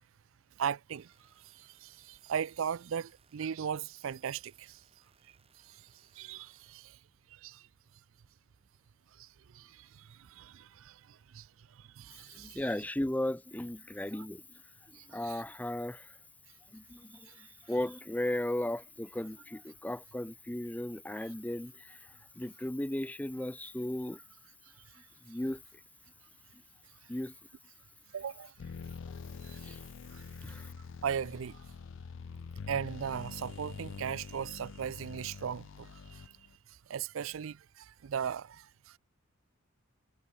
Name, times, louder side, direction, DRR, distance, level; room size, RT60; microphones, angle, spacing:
voice 1, 0.6-1.1 1.4-4.8 5.6-5.8 6.1-7.0 7.3-7.7 9.2-11.5 11.7-12.7 14.1-14.3 14.9-15.4 17.3-17.5 28.1-28.5 29.4-29.8 30.1-30.7 31.0-31.6 32.7-36.3 36.7-39.0, right 7 dB, 70° right, 0.4 m, -38 dB
sound 1, 0.9-6.8, right 5 dB, 30° right, 7.6 m, -68 dB
voice 2, 12.4-14.4 15.1-16.0 16.7-17.2 17.7-22.0 22.4-24.2 25.3-25.6 27.1-27.3 29.6-29.8 30.4-30.7, left 1 dB, 5° left, 0.5 m, -35 dB
sound 2, 28.6-36.6, left 5 dB, 60° left, 0.4 m, -45 dB
head